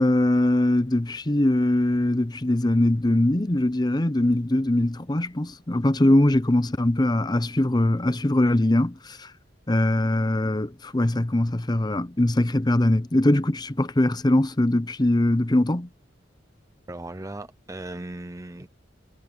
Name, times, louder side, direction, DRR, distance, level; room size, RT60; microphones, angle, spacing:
voice 1, 0.0-9.3 9.7-15.9, left 1 dB, 20° left, 0.8 m, -22 dB
voice 2, 16.9-18.7, right 2 dB, 15° right, 0.6 m, -37 dB
head